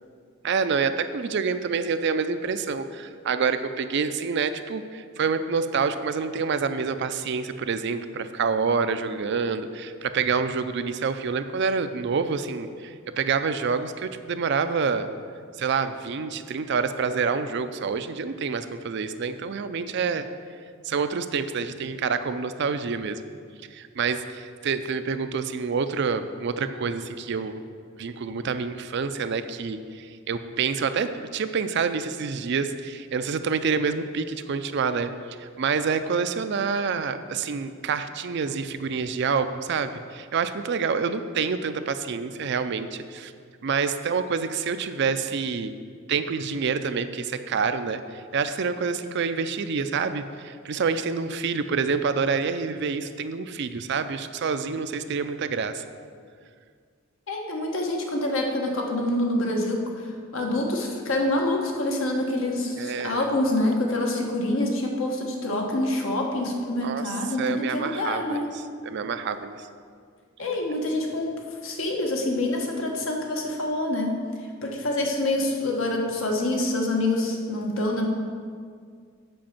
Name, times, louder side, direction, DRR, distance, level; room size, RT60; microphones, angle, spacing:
voice 1, 0.4-15.1 15.6-20.3 20.8-23.2 23.7-27.6 28.0-35.1 35.4-43.3 43.6-45.7 46.1-55.8 62.8-63.3 66.8-68.5 68.8-69.7, right 5 dB, 55° right, 10 dB, 0.4 m, -27 dB
voice 2, 57.3-68.5 70.4-71.3 71.6-74.2 74.6-78.1, left 1 dB, 70° left, 1 dB, 1.2 m, -26 dB
7.7 x 5.1 x 7.1 m, 2.1 s
head